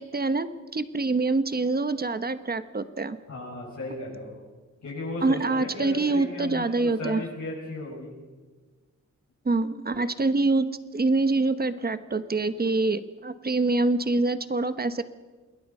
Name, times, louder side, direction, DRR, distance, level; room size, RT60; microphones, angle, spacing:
voice 1, 0.0-3.2 5.2-7.2 9.4-10.7 10.9-15.0, right 3 dB, 30° right, 12 dB, 1.1 m, -25 dB
voice 2, 3.3-4.4 4.8-8.1, left 2 dB, 70° left, -6 dB, 7.3 m, -35 dB
27.5 x 21.0 x 5.6 m, 1.3 s
wide cardioid pair, 120°, 29 cm